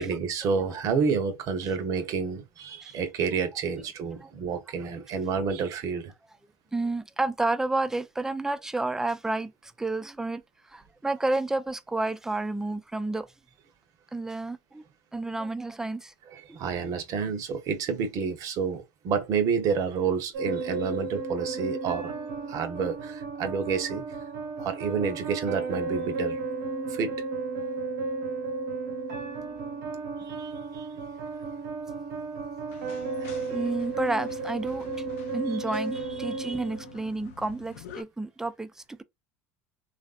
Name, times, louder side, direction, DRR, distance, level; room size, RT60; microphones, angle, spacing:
voice 1, 0.0-6.1 16.3-22.1 22.5-24.2 24.6-26.4 26.8-27.2 30.2-31.0 33.2-33.6 35.5-35.6, right 5 dB, 55° right, 0.8 m, -29 dB
voice 2, 6.7-10.4 10.7-13.3 14.1-14.8 15.1-16.1 33.5-35.1 35.3-39.0, right 2 dB, 5° right, 0.4 m, -30 dB
sound 1, 20.3-37.3, right 4 dB, 85° right, 1.2 m, -34 dB
sound 2, 32.7-38.0, left 7 dB, 85° left, 0.5 m, -48 dB
3.1 x 2.5 x 2.4 m
supercardioid pair, 95°, 7 cm